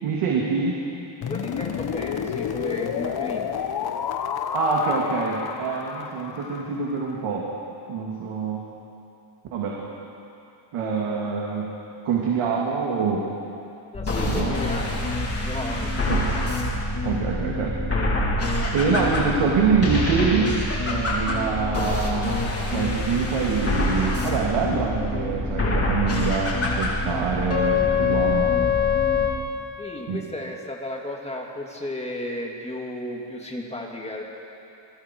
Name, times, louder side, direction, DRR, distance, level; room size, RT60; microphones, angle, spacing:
voice 1, 0.0-0.8 4.5-7.5 7.9-8.7 9.5-9.8 10.7-11.7 12.0-13.3 14.2-14.6 16.1-16.3 17.0-17.8 18.7-20.6 20.8-22.4 22.7-28.6 30.1-30.2, right 5 dB, 90° right, -3 dB, 2.8 m, -25 dB
sound 1, 1.2-7.1, left 8 dB, 50° left, 1.1 m, -30 dB
voice 2, 1.3-3.5 13.9-14.9 15.4-15.9 29.8-34.2, left 1 dB, 15° left, -1 dB, 2.6 m, -34 dB
sound 2, 13.9-29.3, left 3 dB, 30° left, 3.8 m, -25 dB
27.5 x 22.0 x 4.7 m, 2.7 s
cardioid pair, 140°, 50 cm